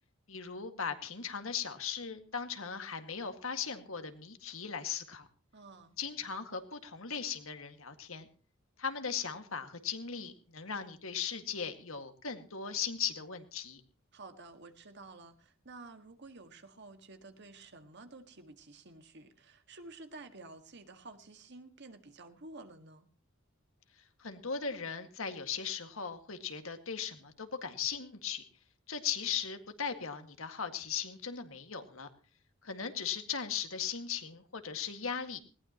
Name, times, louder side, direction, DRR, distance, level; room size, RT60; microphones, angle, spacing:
voice 1, 0.3-5.3 6.0-8.3 8.8-13.8 24.2-28.4 28.9-32.1 32.6-35.4, left 7 dB, 80° left, 7 dB, 2.0 m, -38 dB
voice 2, 5.5-6.0 14.1-23.1, right 3 dB, 55° right, 7 dB, 1.8 m, -51 dB
20.0 x 18.5 x 3.0 m, 0.38 s
head